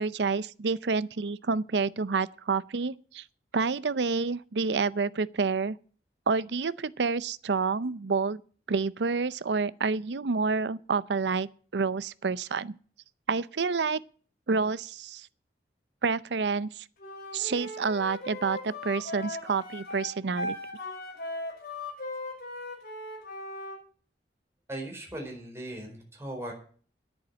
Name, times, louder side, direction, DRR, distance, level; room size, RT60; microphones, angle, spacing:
voice 1, 0.0-3.2 3.5-5.8 6.3-8.4 8.7-11.5 11.7-12.8 13.3-14.0 14.5-15.3 16.0-16.8 17.3-20.6, right 4 dB, 75° right, 0.6 m, -28 dB
Wind instrument woodwind instrument, 17.0-23.8, left 2 dB, 55° left, 5.8 m, -38 dB
voice 2, 24.7-26.5, right 1 dB, 15° right, 4.4 m, -38 dB
10.5 x 9.2 x 7.4 m
head